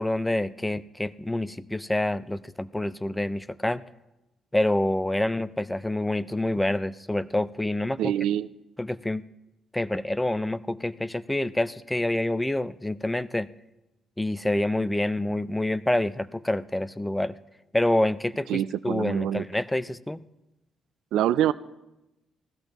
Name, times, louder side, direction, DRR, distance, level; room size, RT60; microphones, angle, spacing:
voice 1, 0.0-3.8 4.5-8.1 8.8-9.2 9.7-13.5 14.2-17.3 17.7-20.2, left 1 dB, 10° left, 15 dB, 0.5 m, -27 dB
voice 2, 8.0-8.5 18.5-19.5 21.1-21.5, right 11 dB, 85° right, 17 dB, 0.4 m, -25 dB
19.5 x 15.0 x 3.0 m, 0.95 s
cardioid pair, 90°, 0 cm